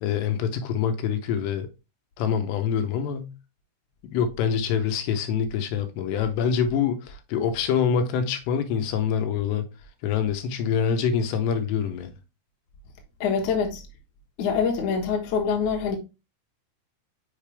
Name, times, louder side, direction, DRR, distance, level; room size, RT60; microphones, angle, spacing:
voice 1, 0.0-1.7 2.2-3.3 4.0-9.7 10.0-12.1, left 7 dB, 90° left, 3.1 m, -25 dB
voice 2, 13.2-13.8 14.4-16.0, left 6 dB, 60° left, 2.3 m, -25 dB
6.4 x 5.0 x 3.4 m
omnidirectional pair, 4.8 m